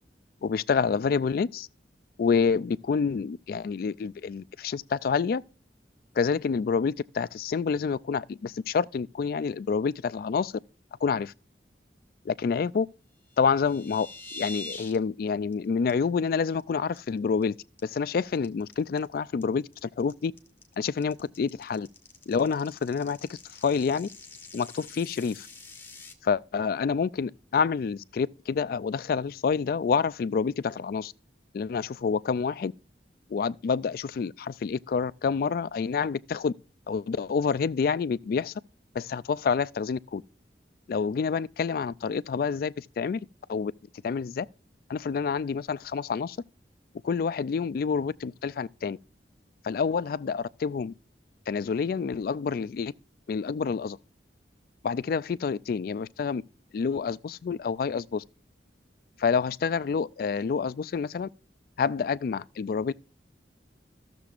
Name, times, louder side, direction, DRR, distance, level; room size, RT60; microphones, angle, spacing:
voice 1, 0.4-1.7 2.2-5.4 6.2-10.5 11.0-11.3 12.3-12.9 13.4-14.1 14.3-17.5 17.8-20.3 20.8-21.9 22.3-23.2 23.6-24.1 24.5-25.5 26.2-31.1 31.5-32.7 33.3-36.5 36.9-38.5 39.0-40.2 40.9-43.7 44.0-44.5 44.9-46.4 47.0-49.0 49.6-50.9 51.5-52.9 53.3-54.0 54.8-56.4 56.7-58.2 59.2-61.3 61.8-62.9, left 5 dB, 55° left, 0.3 m, -28 dB
sound 1, 13.3-15.0 15.3-15.5 15.9-16.0 16.3-16.6 17.0-17.4 17.8-26.1, left 2 dB, 15° left, 1.2 m, -45 dB
14.5 x 6.9 x 2.4 m
head